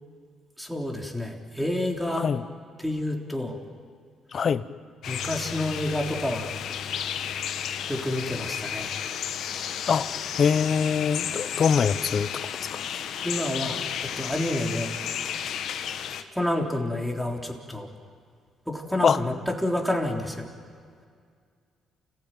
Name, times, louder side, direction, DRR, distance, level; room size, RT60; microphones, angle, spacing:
voice 1, 0.6-2.3 2.8-3.6 5.1-6.5 7.9-8.9 13.2-14.9 16.3-17.9 18.7-20.5, left 1 dB, ahead, 1 dB, 3.6 m, -29 dB
voice 2, 4.3-4.6 9.9-10.1 10.4-12.3 12.9-13.0 19.0-19.2, left 6 dB, 50° left, 15 dB, 0.9 m, -23 dB
sound 1, 5.0-16.2, left 9 dB, 75° left, 1.3 m, -33 dB
29.0 x 16.0 x 9.2 m, 2.1 s
cardioid pair, 80°, 0 cm